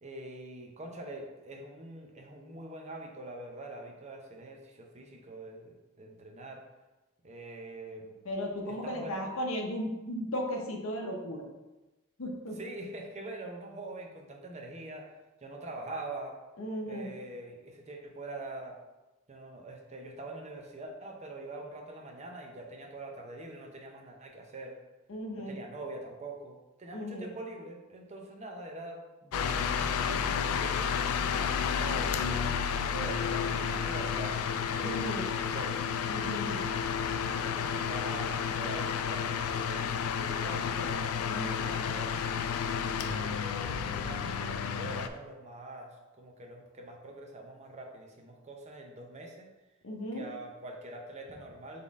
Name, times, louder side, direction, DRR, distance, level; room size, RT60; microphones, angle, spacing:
voice 1, 0.0-6.6 7.2-8.1 8.7-9.2 12.5-15.1 15.4-16.4 16.9-18.8 19.3-24.8 25.5-31.0 31.3-32.3 32.8-35.9 36.5-36.9 37.3-42.1 43.1-49.5 50.1-51.8, right 2 dB, 30° right, 1 dB, 0.6 m, -44 dB
voice 2, 8.2-11.4 12.2-12.6 16.6-17.1 25.1-25.6 26.9-27.3 34.8-35.2 36.1-36.7 41.3-41.5 49.8-50.3, equal, 65° left, 2 dB, 0.8 m, -36 dB
sound 1, 29.3-45.1, left 7 dB, 90° left, 0.3 m, -31 dB
4.0 x 3.7 x 3.6 m, 1.1 s
head